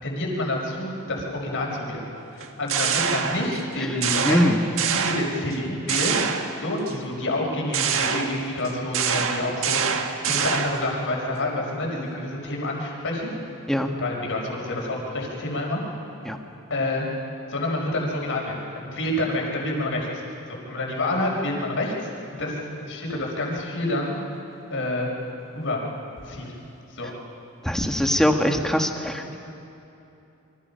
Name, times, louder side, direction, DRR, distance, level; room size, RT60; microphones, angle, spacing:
voice 1, 0.0-2.0 2.4-4.5 4.9-6.2 6.6-13.3 14.0-15.8 16.7-17.1 17.5-20.1 20.5-22.1 22.4-24.2 24.7-25.1 25.5-25.8 26.3-26.5 26.9-27.1, left 1 dB, 60° left, -1 dB, 5.5 m, -28 dB
sound 1, 2.4-3.7 4.0-5.6 5.9-6.9 7.7-10.9, right 7 dB, 65° right, 1.6 m, -26 dB
voice 2, 4.2-4.6 13.7-13.9 16.2-16.4 27.6-29.3, equal, ahead, 3 dB, 1.6 m, -22 dB
29.0 x 24.5 x 5.7 m, 2.9 s
head